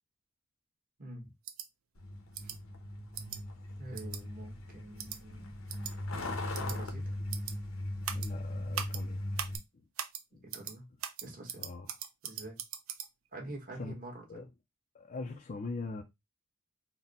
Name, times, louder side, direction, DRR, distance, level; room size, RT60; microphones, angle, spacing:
voice 1, 1.0-1.3 2.4-2.5 3.8-5.5 6.6-7.1 10.4-10.9 11.2-11.6 12.2-12.6 13.3-14.4, right 1 dB, 40° right, 1.3 m, -46 dB
sound 1, 1.5-1.7 2.3-2.6 3.2-3.4 4.0-4.2 5.0-5.2 5.7-5.9 6.5-6.8 7.3-7.5 8.0-8.3 8.7-9.0 9.4-9.6 10.0-10.2 10.5-10.7 11.0-13.1, right 9 dB, 85° right, 0.5 m, -39 dB
Truck, 2.0-9.6, left 1 dB, 80° left, 0.9 m, -39 dB
voice 2, 8.1-9.3 10.3-10.4 11.6-11.9 13.8-13.9 14.3-14.5 14.9-16.0, left 3 dB, 40° left, 0.4 m, -41 dB
4.0 x 2.1 x 3.9 m
head